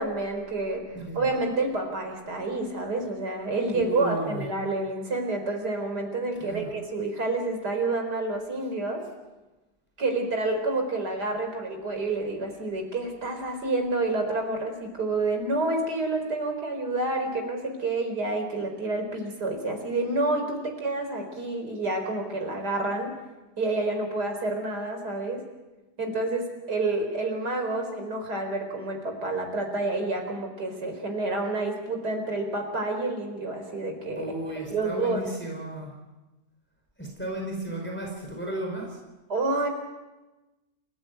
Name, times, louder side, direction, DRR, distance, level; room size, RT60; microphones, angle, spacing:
voice 1, 0.0-0.8 1.1-9.0 10.0-23.1 23.6-25.4 26.0-34.2 34.7-35.2 39.3-39.7, right 2 dB, 80° right, 4 dB, 4.9 m, -29 dB
voice 2, 0.9-1.3 3.7-4.5 6.3-6.8 34.1-35.9 37.0-39.0, right 1 dB, 5° left, 0 dB, 5.0 m, -34 dB
28.5 x 15.0 x 9.3 m, 1.1 s
omnidirectional pair, 1.7 m